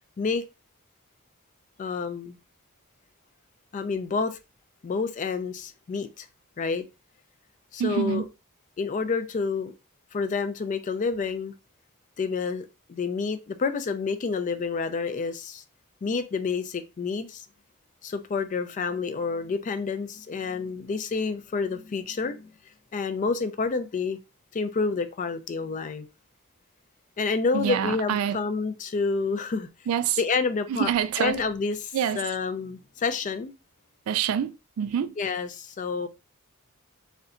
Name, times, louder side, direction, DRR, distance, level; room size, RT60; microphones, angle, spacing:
voice 1, 1.8-2.4 3.7-4.4 4.8-6.3 6.6-6.9 7.7-8.2 8.8-9.7 10.1-11.5 12.2-15.6 16.0-17.5 18.0-22.5 22.9-24.2 24.5-26.1 27.2-29.7 30.2-30.9 31.2-33.5 35.2-36.1, left 4 dB, 35° left, 0.3 m, -29 dB
voice 2, 7.8-8.2 27.5-28.4 29.9-30.2 30.7-31.4 31.9-32.2 34.1-35.1, right 8 dB, 75° right, 0.3 m, -26 dB
3.7 x 2.2 x 2.3 m
head